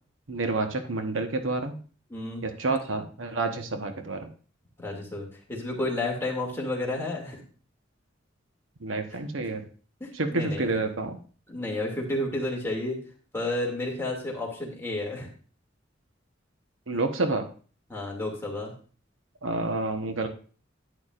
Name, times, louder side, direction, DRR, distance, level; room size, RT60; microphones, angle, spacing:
voice 1, 0.3-1.8 2.4-4.3 8.8-9.7 10.1-11.2 16.9-17.5 19.4-20.3, right 3 dB, 85° right, 6 dB, 1.1 m, -29 dB
voice 2, 2.1-2.4 4.8-7.4 9.4-9.5 10.0-10.7 11.5-13.0 13.3-15.3 17.9-18.7, left 2 dB, 15° left, -2 dB, 2.4 m, -31 dB
11.0 x 9.4 x 2.5 m, 0.40 s
head